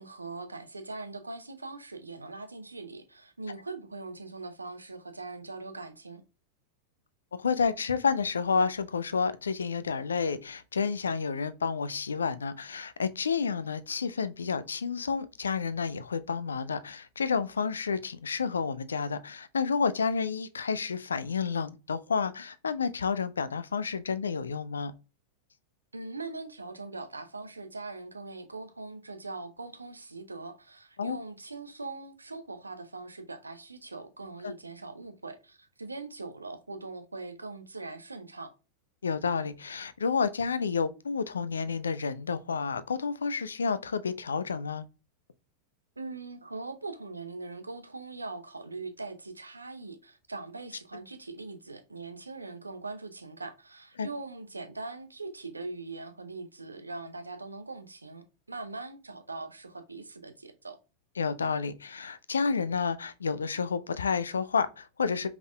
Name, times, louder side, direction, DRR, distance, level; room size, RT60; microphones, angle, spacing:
voice 1, 0.0-6.2 25.9-38.5 46.0-60.8, right 3 dB, 80° right, 0.7 m, -41 dB
voice 2, 7.3-24.9 31.0-31.2 34.4-34.5 39.0-44.8 54.0-54.1 61.2-65.3, left 5 dB, 70° left, 0.4 m, -30 dB
5.3 x 3.6 x 2.2 m
figure-of-eight pair, 90°, 0 cm